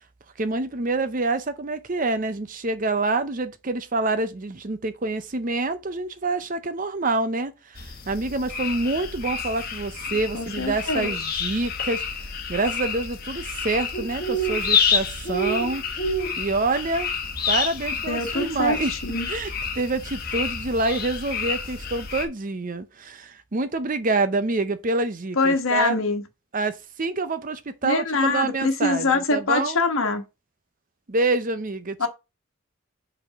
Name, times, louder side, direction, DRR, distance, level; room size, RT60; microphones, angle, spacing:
voice 1, 0.4-15.8 16.4-17.1 17.5-18.9 19.3-26.0 26.5-29.8 31.1-32.1, right 3 dB, 40° right, 0.6 m, -27 dB
sound 1, 7.7-22.2, left 4 dB, 40° left, 1.2 m, -28 dB
voice 2, 10.3-11.1 18.1-19.3 25.4-26.2 27.8-30.2 32.0-32.1, left 3 dB, 70° left, 1.3 m, -24 dB
5.3 x 4.1 x 5.8 m
head